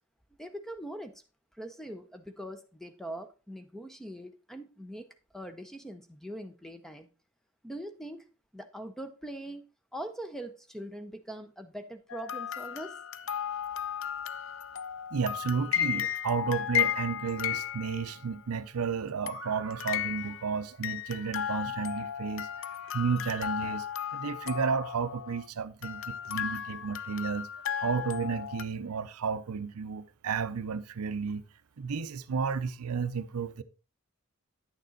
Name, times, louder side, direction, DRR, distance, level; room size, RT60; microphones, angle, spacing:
voice 1, 0.4-1.2 1.6-7.1 7.6-8.2 8.5-13.0, right 1 dB, ahead, 0.6 m, -42 dB
sound 1, 12.1-18.4 19.3-20.6 20.8-25.5 25.8-28.6, left 10 dB, 60° left, 0.5 m, -34 dB
voice 2, 15.1-22.5 22.9-23.9 24.1-27.5 27.8-31.4 31.8-33.6, right 5 dB, 80° right, 0.6 m, -32 dB
9.6 x 6.6 x 3.9 m
head